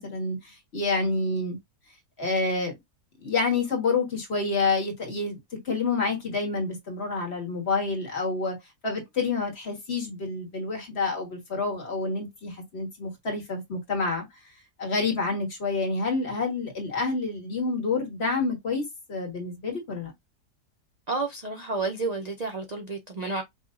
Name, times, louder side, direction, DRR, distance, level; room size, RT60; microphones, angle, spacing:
voice 1, 0.0-1.6 2.2-2.7 3.2-5.4 5.7-8.6 8.8-14.3 14.8-18.8 19.1-20.1, left 3 dB, 40° left, 1.7 m, -28 dB
voice 2, 21.1-23.4, right 3 dB, 65° right, 0.4 m, -30 dB
5.6 x 2.8 x 2.5 m
omnidirectional pair, 1.7 m